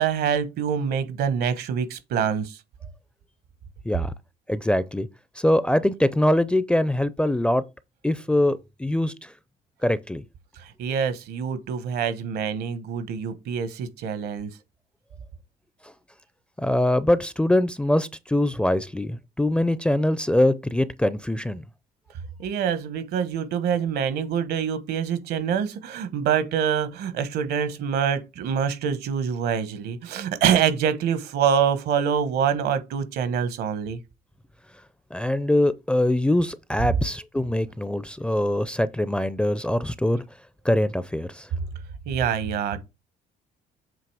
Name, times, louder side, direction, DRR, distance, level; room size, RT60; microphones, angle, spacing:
voice 1, 0.0-2.6 10.6-14.6 22.4-34.0 42.1-42.9, right 7 dB, 75° right, 1.1 m, -25 dB
voice 2, 4.5-5.1 5.4-7.6 8.0-9.3 9.8-10.2 16.6-21.6 35.1-40.2 40.6-41.5, left 1 dB, 5° left, 0.4 m, -23 dB
7.6 x 2.9 x 4.7 m
cardioid pair, 105°, 17 cm